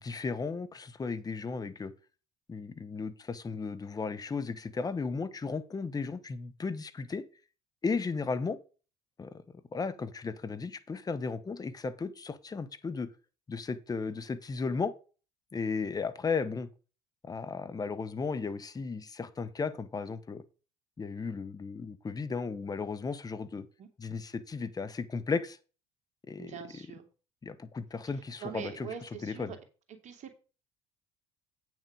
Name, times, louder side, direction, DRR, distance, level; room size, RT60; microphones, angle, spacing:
voice 1, 0.0-1.9 2.5-7.2 7.8-8.6 9.2-13.1 13.5-14.9 15.5-16.7 17.2-20.4 21.0-23.7 24.0-25.6 26.3-26.5 27.4-29.5, left 4 dB, 25° left, 13 dB, 1.2 m, -35 dB
voice 2, 26.4-27.1 28.1-29.6 29.9-30.4, right 8 dB, 50° right, 6 dB, 2.5 m, -43 dB
8.7 x 6.4 x 5.0 m, 0.34 s
hypercardioid pair, 65°, 15 cm